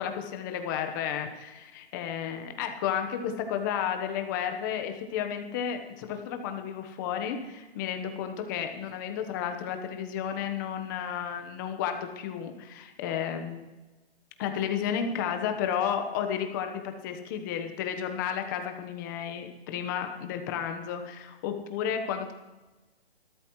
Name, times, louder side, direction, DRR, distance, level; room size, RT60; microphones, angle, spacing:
voice 1, 0.0-13.7 14.4-22.3, left 8 dB, 20° left, 6 dB, 1.1 m, -32 dB
25.0 x 12.5 x 3.2 m, 1.1 s
hypercardioid pair, 160°, 32 cm